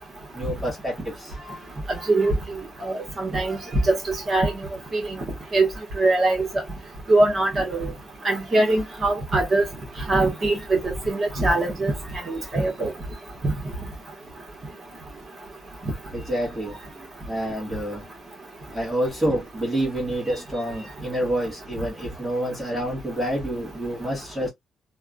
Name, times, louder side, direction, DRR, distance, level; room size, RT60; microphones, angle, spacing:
voice 1, 0.3-1.3 3.3-3.4 16.1-18.0 18.7-24.5, right 1 dB, 5° right, 1.4 m, -28 dB
voice 2, 2.8-3.6 3.8-4.5 4.9-5.0 5.5-5.7 6.0-6.5 7.1-7.9 8.2-9.6 10.1-11.9 12.3-12.9 13.4-13.5, right 2 dB, 30° right, 1.3 m, -22 dB
3.4 x 2.2 x 2.4 m
cardioid pair, 165°, 0 cm